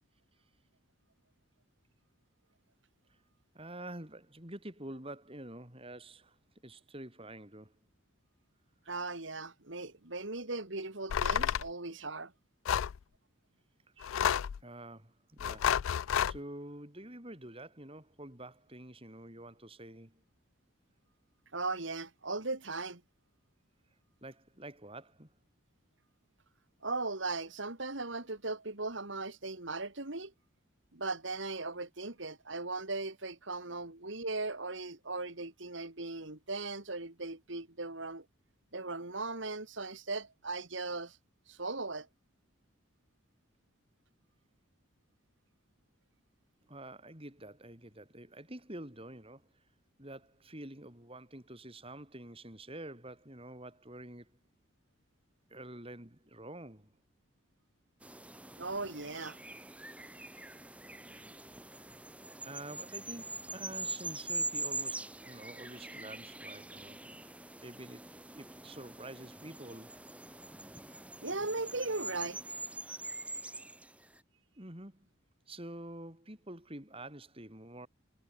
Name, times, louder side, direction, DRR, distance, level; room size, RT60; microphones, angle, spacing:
voice 1, 3.5-6.4 6.6-7.7 14.6-15.8 16.2-20.2 24.2-25.3 46.7-49.5 50.0-54.3 55.5-57.0 62.4-70.1 74.6-75.1 75.5-77.9, right 1 dB, 25° right, 5.0 m, -48 dB
voice 2, 8.9-12.3 14.0-14.1 21.5-23.0 26.8-30.3 30.9-38.2 38.7-41.2 41.5-42.1 58.6-59.4 71.2-72.4, right 3 dB, 65° right, 2.7 m, -38 dB
sound 1, 11.1-11.7 12.7-13.0 14.0-14.6 15.4-16.4, left 9 dB, 80° left, 0.4 m, -30 dB
sound 2, 58.0-74.2, right 2 dB, 5° right, 3.5 m, -43 dB
head